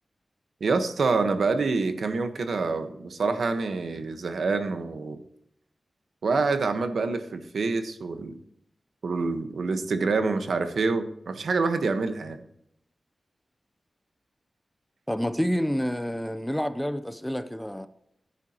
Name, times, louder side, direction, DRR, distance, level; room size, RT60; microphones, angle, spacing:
voice 1, 0.6-5.2 6.2-8.4 9.0-12.4, right 4 dB, 80° right, 1.2 m, -26 dB
voice 2, 15.1-17.9, equal, 5° left, 0.6 m, -28 dB
14.5 x 9.8 x 3.0 m
wide cardioid pair, 120°, 0 cm